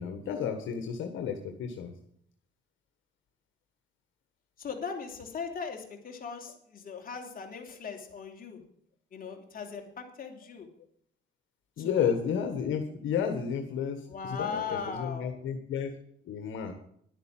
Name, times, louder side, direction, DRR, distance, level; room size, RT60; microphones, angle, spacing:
voice 1, 0.0-1.9 7.1-7.2 11.8-15.9 16.2-16.7, left 7 dB, 80° left, 5 dB, 1.6 m, -32 dB
voice 2, 4.6-8.6 9.1-10.7 11.8-12.1 14.1-15.3, left 6 dB, 45° left, 3 dB, 3.1 m, -38 dB
11.0 x 9.1 x 7.5 m, 0.65 s
cardioid pair, 90°, 20 cm